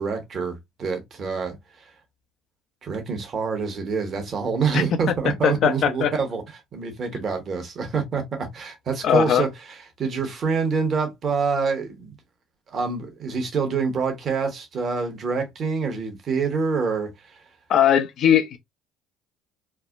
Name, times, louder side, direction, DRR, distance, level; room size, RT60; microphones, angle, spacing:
voice 1, 0.0-1.9 2.8-6.4 6.7-12.2 12.7-17.4, right 5 dB, 45° right, 1.1 m, -26 dB
voice 2, 5.4-6.1 9.0-9.4 17.7-18.6, left 9 dB, 55° left, 0.5 m, -19 dB
3.2 x 2.1 x 2.4 m
hypercardioid pair, 70°, 0 cm